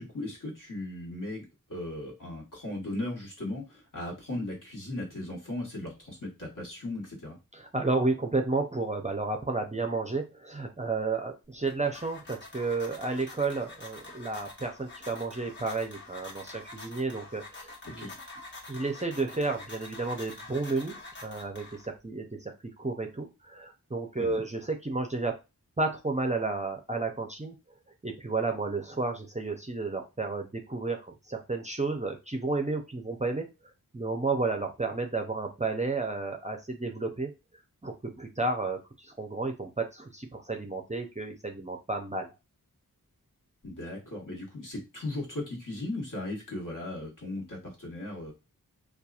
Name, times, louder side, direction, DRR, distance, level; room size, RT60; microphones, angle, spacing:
voice 1, 0.0-7.4 17.8-18.1 24.2-24.4 43.6-48.3, left 1 dB, 60° left, -3 dB, 1.3 m, -37 dB
voice 2, 7.5-18.1 18.7-25.3 25.8-27.6 28.0-33.5 33.9-37.3 37.8-42.3, right 3 dB, 20° right, 3 dB, 0.4 m, -32 dB
sound 1, 11.4-22.1, left 2 dB, 30° left, 1.0 m, -47 dB
2.8 x 2.3 x 2.3 m, 0.26 s
wide cardioid pair, 45°, 35 cm